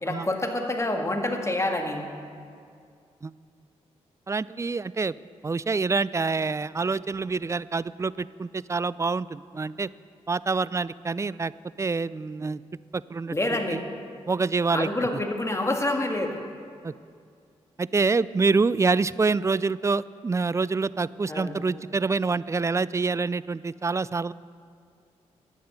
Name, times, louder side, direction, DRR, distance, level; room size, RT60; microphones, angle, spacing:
voice 1, 0.0-2.1 13.3-13.8 14.7-16.4 21.3-21.6, left 1 dB, 20° left, 3 dB, 1.9 m, -27 dB
voice 2, 4.3-5.1 5.4-9.9 10.3-11.5 11.8-12.6 12.9-13.4 13.7-13.8 14.3-14.9 16.8-16.9 17.8-24.3, right 4 dB, 25° right, 19 dB, 0.3 m, -26 dB
11.0 x 8.7 x 6.7 m, 2.3 s
supercardioid pair, 45°, 13 cm